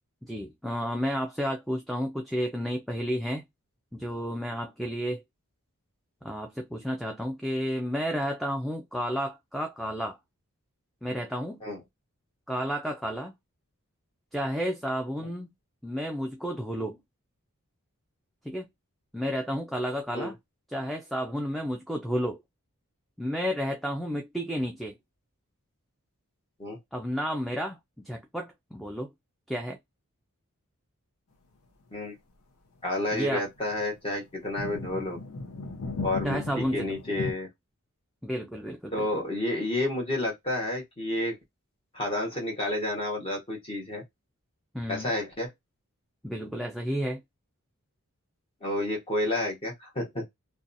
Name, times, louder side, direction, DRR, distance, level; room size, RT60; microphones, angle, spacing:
voice 1, 0.2-3.4 3.9-5.2 6.2-10.2 11.0-11.6 12.5-13.3 14.3-15.5 15.8-17.0 18.4-18.7 19.1-20.4 20.7-22.4 23.2-25.0 26.9-29.1 29.5-29.8 33.1-33.4 36.2-37.0 38.2-39.1 44.7-45.2 46.2-47.2, equal, ahead, 0.3 m, -31 dB
voice 2, 32.8-35.2 36.0-37.5 38.9-41.4 41.9-44.0 44.9-45.5 48.6-50.2, left 1 dB, 25° left, 0.9 m, -30 dB
sound 1, 33.6-33.8 34.5-37.3, left 2 dB, 70° left, 0.7 m, -36 dB
2.7 x 2.2 x 2.5 m
head